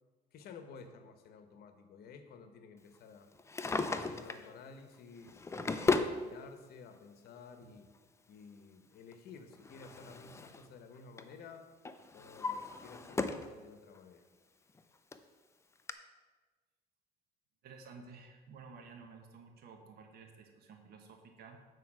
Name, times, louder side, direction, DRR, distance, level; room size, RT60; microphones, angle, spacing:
voice 1, 0.3-3.3 3.9-7.9 8.3-11.7 12.1-14.2, left 5 dB, 65° left, 8 dB, 1.0 m, -53 dB
Drawer open or close, 3.3-4.5 5.2-6.2 7.3-7.4 9.1-10.7 11.0-11.3 11.8-13.5 13.9-14.0 14.8-14.9 15.1-15.2 15.9-16.0, left 3 dB, 15° left, 0.5 m, -35 dB
voice 2, 17.6-21.6, right 5 dB, 70° right, 4 dB, 1.4 m, -53 dB
8.4 x 4.6 x 6.1 m, 1.3 s
cardioid pair, 110°, 17 cm